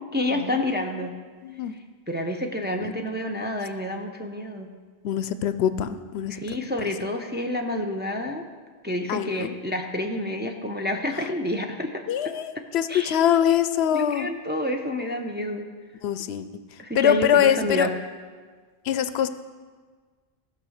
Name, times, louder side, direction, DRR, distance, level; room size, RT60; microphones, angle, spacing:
voice 1, 0.1-1.1 2.1-4.7 6.3-8.4 8.8-12.0 12.9-13.2 13.9-15.7 16.8-17.9, left 1 dB, 10° right, 2 dB, 0.6 m, -29 dB
voice 2, 5.0-5.9 6.1-6.3 9.1-9.5 12.1-14.3 16.0-16.4 17.0-17.9 18.9-19.3, left 9 dB, 80° left, 12 dB, 0.8 m, -23 dB
15.0 x 5.5 x 6.4 m, 1.5 s
omnidirectional pair, 1.1 m